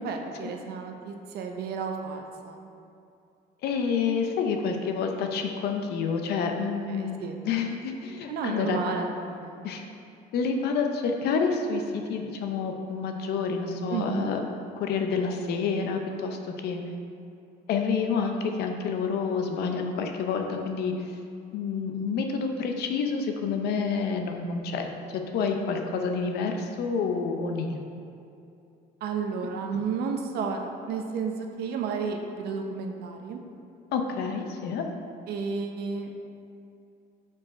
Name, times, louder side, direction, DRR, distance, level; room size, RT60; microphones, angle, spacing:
voice 1, 0.0-2.7 6.9-7.4 8.3-9.6 13.9-14.3 29.0-33.4 35.3-36.2, right 5 dB, 70° right, 3 dB, 0.6 m, -32 dB
voice 2, 3.6-8.8 9.6-9.8 10.3-14.4 14.8-16.8 17.7-20.9 21.5-27.8 33.9-34.9, left 5 dB, 75° left, 4 dB, 0.6 m, -28 dB
4.8 x 4.7 x 4.2 m, 2.6 s
cardioid pair, 110°, 17 cm